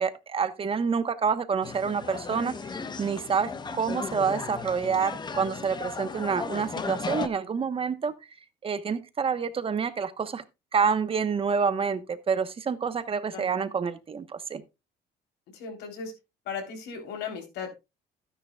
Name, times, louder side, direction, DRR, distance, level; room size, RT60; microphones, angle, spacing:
voice 1, 0.0-2.5 3.0-8.1 8.6-10.4 10.7-14.6, right 6 dB, 35° right, 1.1 m, -28 dB
sound 1, 1.6-7.3, left 4 dB, 25° left, 1.0 m, -35 dB
voice 2, 15.5-16.1 16.5-17.7, left 6 dB, 80° left, 3.6 m, -36 dB
12.5 x 10.0 x 2.3 m
cardioid pair, 110°, 17 cm